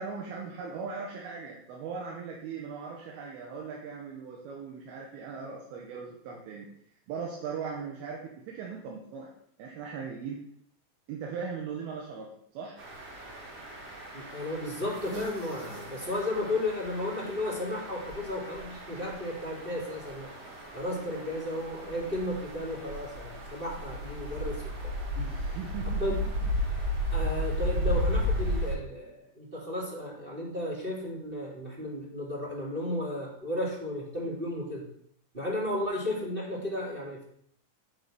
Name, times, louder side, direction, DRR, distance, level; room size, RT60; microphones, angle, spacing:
voice 1, 0.0-6.7 7.1-9.3 9.6-10.4 11.1-12.8 25.2-26.2, right 5 dB, 85° right, -2 dB, 2.9 m, -39 dB
sound 1, 12.8-28.7, equal, 55° right, 1.1 m, -34 dB
voice 2, 14.1-20.3 20.7-24.9 26.0-26.2 27.1-34.8 35.3-37.2, left 1 dB, 20° right, -5 dB, 1.4 m, -34 dB
9.7 x 4.0 x 4.8 m, 0.67 s
omnidirectional pair, 4.4 m